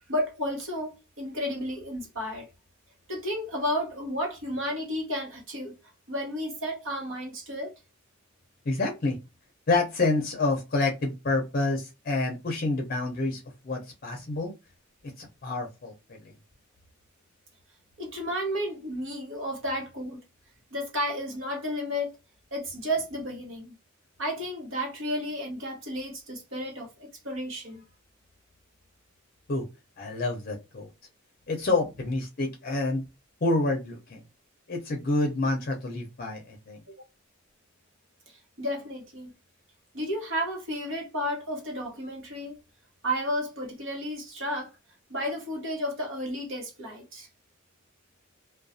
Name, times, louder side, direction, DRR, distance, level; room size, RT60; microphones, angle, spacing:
voice 1, 0.0-2.5 3.1-5.8 6.1-7.7 18.0-20.2 20.7-22.1 22.5-23.7 24.2-27.8 38.3-39.3 39.9-42.6 43.0-44.7 45.1-47.3, equal, 65° right, 1.0 m, -32 dB
voice 2, 8.7-9.2 9.7-14.5 15.0-16.3 29.5-29.7 30.0-30.9 31.5-33.1 33.4-34.2 34.7-36.8, left 2 dB, 45° left, 0.5 m, -28 dB
2.3 x 2.2 x 2.6 m
head